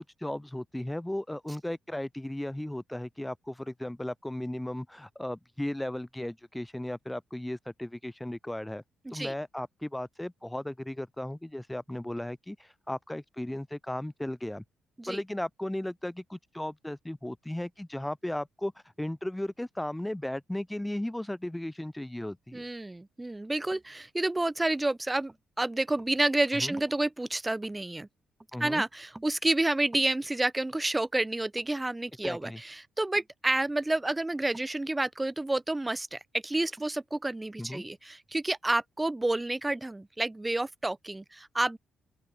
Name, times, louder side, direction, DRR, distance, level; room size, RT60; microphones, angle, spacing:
voice 1, 0.0-8.8 9.1-14.6 15.1-18.7 19.0-22.6 26.5-26.8 28.5-28.8 32.2-32.6 37.6-37.8, left 1 dB, 5° left, 2.7 m, -36 dB
voice 2, 22.5-28.1 28.6-41.8, right 2 dB, 15° right, 0.6 m, -29 dB
open air
cardioid pair, 90°, 0 cm